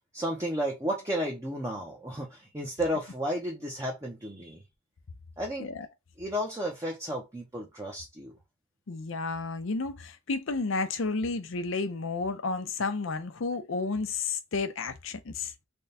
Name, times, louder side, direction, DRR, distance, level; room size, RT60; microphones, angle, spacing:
voice 1, 0.1-4.6 5.4-5.7 6.2-8.3, equal, 15° right, 0.7 m, -33 dB
voice 2, 8.9-15.5, left 3 dB, 65° left, 0.6 m, -31 dB
3.4 x 2.2 x 4.2 m
head